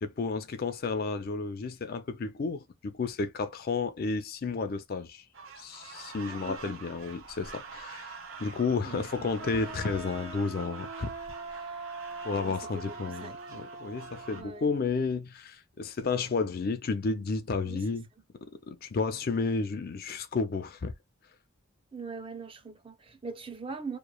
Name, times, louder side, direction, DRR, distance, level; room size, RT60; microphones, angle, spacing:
voice 1, 0.0-5.2 5.6-11.1 12.2-18.1 18.7-20.9, left 4 dB, 45° left, 0.4 m, -32 dB
sound 1, 5.3-14.4, right 4 dB, 65° right, 0.8 m, -46 dB
voice 2, 6.3-6.8 8.8-9.3 11.6-12.0 12.3-12.6 12.9-13.3 14.3-14.7 17.6-17.8 21.9-24.0, right 4 dB, 25° right, 0.4 m, -42 dB
sound 2, 9.4-14.9, right 3 dB, 80° right, 1.1 m, -43 dB
3.0 x 2.1 x 2.2 m
head